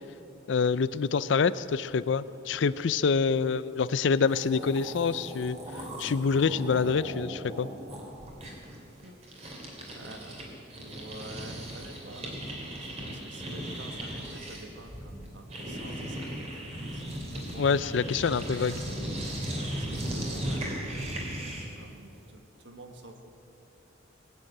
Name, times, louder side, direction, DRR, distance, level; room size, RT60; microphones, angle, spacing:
voice 1, 0.5-7.7 17.6-18.8, left 5 dB, 65° left, 17 dB, 0.4 m, -26 dB
sound 1, 4.0-4.1 4.2-10.4 10.7-21.8, right 1 dB, 35° right, 2.8 m, -37 dB
voice 2, 8.9-9.6 9.9-12.3 12.8-18.2 18.5-18.7 19.2-21.1 21.4-23.3, right 2 dB, 65° right, 5 dB, 1.4 m, -49 dB
19.5 x 8.1 x 8.8 m, 2.8 s
head